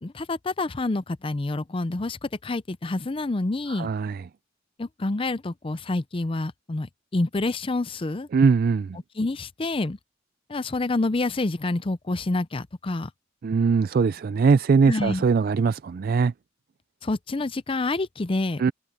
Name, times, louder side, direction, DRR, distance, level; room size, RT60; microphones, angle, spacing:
voice 1, 0.0-3.9 4.8-8.3 9.2-10.0 10.5-13.1 14.9-15.2 17.0-18.7, left 2 dB, 25° left, 0.5 m, -28 dB
voice 2, 3.7-4.2 8.3-9.0 13.4-16.3 18.6-18.7, right 5 dB, 50° right, 0.3 m, -21 dB
head